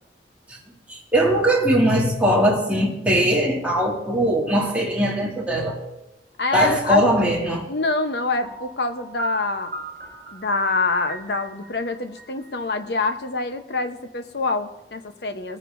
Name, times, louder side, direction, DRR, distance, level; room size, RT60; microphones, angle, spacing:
voice 1, 0.9-5.8 6.5-7.7, right 1 dB, 10° right, -4 dB, 2.1 m, -20 dB
voice 2, 6.4-7.1 7.7-9.7 10.3-15.6, left 3 dB, 70° left, 8 dB, 0.9 m, -25 dB
Piano, 8.4-13.3, right 4 dB, 40° right, 3.4 m, -39 dB
21.5 x 9.4 x 2.6 m, 0.94 s
head